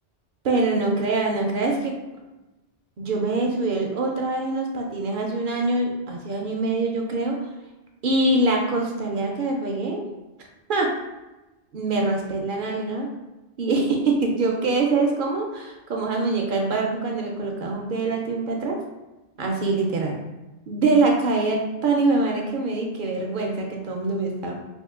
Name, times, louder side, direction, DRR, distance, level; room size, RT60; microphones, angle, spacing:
voice 1, 0.4-2.0 3.0-7.4 8.0-10.1 10.7-10.9 11.7-13.1 13.6-18.8 19.4-20.1 20.7-24.5, right 3 dB, 60° right, 1 dB, 0.6 m, -24 dB
2.8 x 2.5 x 3.6 m, 1.0 s
omnidirectional pair, 1.1 m